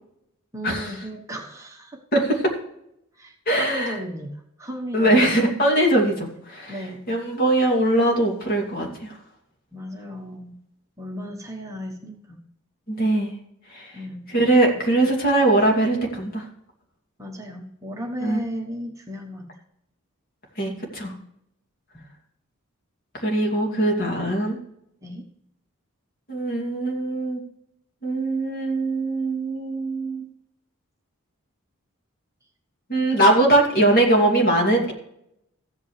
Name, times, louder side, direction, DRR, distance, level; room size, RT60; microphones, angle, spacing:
voice 1, 0.5-2.2 3.1-5.4 6.7-7.1 9.7-10.6 11.0-12.4 13.9-14.3 17.2-19.5 21.9-22.1 25.0-25.3, equal, 15° right, 0 dB, 1.1 m, -35 dB
voice 2, 2.1-2.4 3.5-3.9 4.9-6.8 7.1-9.2 12.9-13.3 13.7-13.9 14.3-16.5 18.2-18.4 20.6-21.1 23.1-24.6 26.3-27.4 28.0-30.2 32.9-34.9, right 1 dB, 45° left, 0 dB, 2.6 m, -21 dB
15.0 x 8.5 x 3.2 m, 0.78 s
head